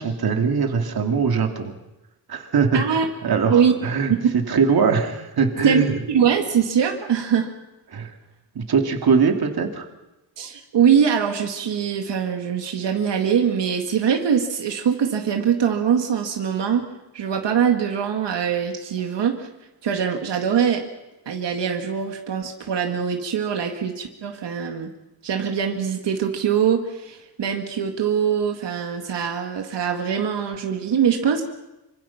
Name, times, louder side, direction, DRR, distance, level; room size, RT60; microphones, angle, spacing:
voice 1, 0.0-1.7 2.3-6.0 7.9-8.1 8.5-9.9, right 5 dB, 60° right, 4 dB, 2.6 m, -22 dB
voice 2, 2.7-3.1 3.5-3.7 4.2-4.3 5.6-7.5 10.4-16.9 17.1-19.5 19.8-20.8 21.3-24.9 25.2-31.4, right 7 dB, 85° right, 3 dB, 2.1 m, -22 dB
26.5 x 25.0 x 5.9 m, 0.99 s
wide cardioid pair, 165°, 41 cm